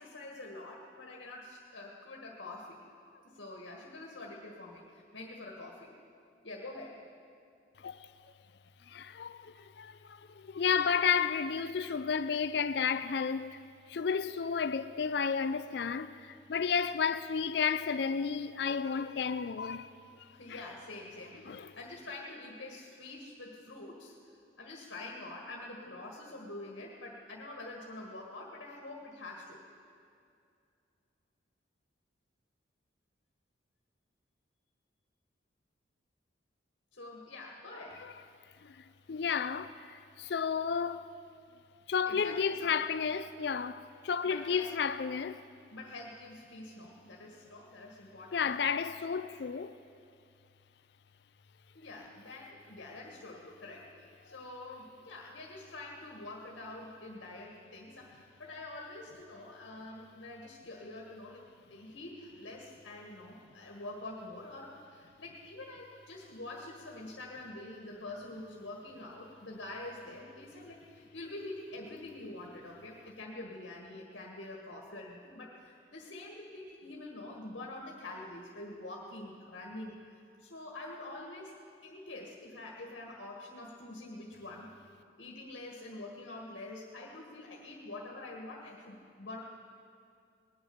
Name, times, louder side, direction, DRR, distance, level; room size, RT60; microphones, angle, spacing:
voice 1, 0.0-5.9 6.4-7.0 20.3-24.2 24.6-29.6 36.9-38.1 42.1-42.8 44.2-44.7 45.7-48.5 51.7-81.5 81.8-84.7 85.2-89.4, left 2 dB, 80° left, 1.7 m, -46 dB
voice 2, 8.9-13.6 13.9-19.9 20.5-20.6 21.5-21.7 38.6-41.0 41.9-45.4 48.3-49.7, left 6 dB, 60° left, 0.4 m, -32 dB
19.0 x 10.0 x 7.1 m
head